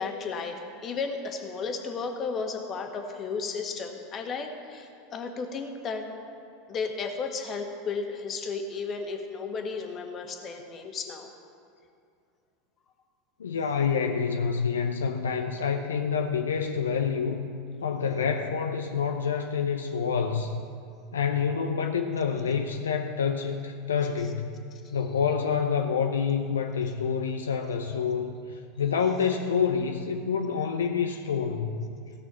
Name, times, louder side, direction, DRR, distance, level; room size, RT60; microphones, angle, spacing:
voice 1, 0.0-6.1 6.7-11.3, left 4 dB, 35° left, 4 dB, 1.6 m, -34 dB
voice 2, 13.4-17.4 17.8-20.6 21.1-24.5 24.9-31.9, left 6 dB, 80° left, 5 dB, 0.6 m, -27 dB
16.5 x 6.2 x 7.0 m, 2.4 s
hypercardioid pair, 85°, 0 cm